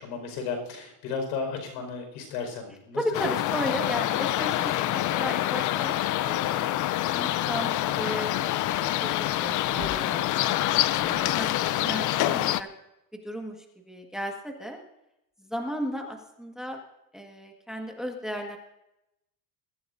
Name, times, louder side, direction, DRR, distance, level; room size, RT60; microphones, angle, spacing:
voice 1, 0.0-3.0, left 5 dB, 80° left, 4 dB, 5.1 m, -34 dB
voice 2, 3.0-5.9 6.2-6.7 7.1-10.4 11.0-12.7 13.1-14.8 15.4-16.8 17.1-18.6, equal, ahead, 2 dB, 1.6 m, -35 dB
sound 1, 3.1-12.6, left 14 dB, 45° left, 0.6 m, -26 dB
22.5 x 14.0 x 2.6 m, 0.87 s
cardioid pair, 135°, 43 cm